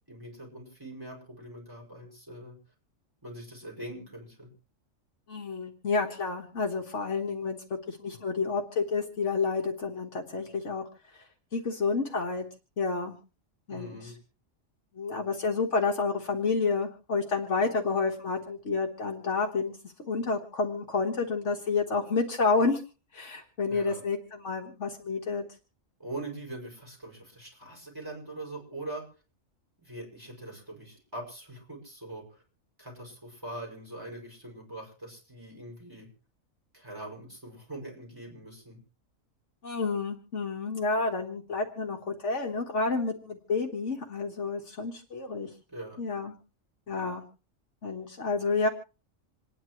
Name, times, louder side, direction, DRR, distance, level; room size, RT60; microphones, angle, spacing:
voice 1, 0.1-2.5 3.2-4.5 13.7-14.1 23.7-24.0 26.0-29.0 29.8-32.4 32.8-36.1 36.7-38.8 45.7-46.0, right 1 dB, 15° right, -1 dB, 6.1 m, -42 dB
voice 2, 5.3-7.6 7.9-10.8 11.5-12.5 12.8-13.2 13.7-14.0 15.0-19.8 20.1-22.8 23.1-25.4 39.6-45.5 46.0-46.4 46.9-47.2 47.8-48.7, left 4 dB, 60° left, 3 dB, 1.7 m, -29 dB
27.5 x 10.5 x 3.1 m, 0.35 s
omnidirectional pair, 1.4 m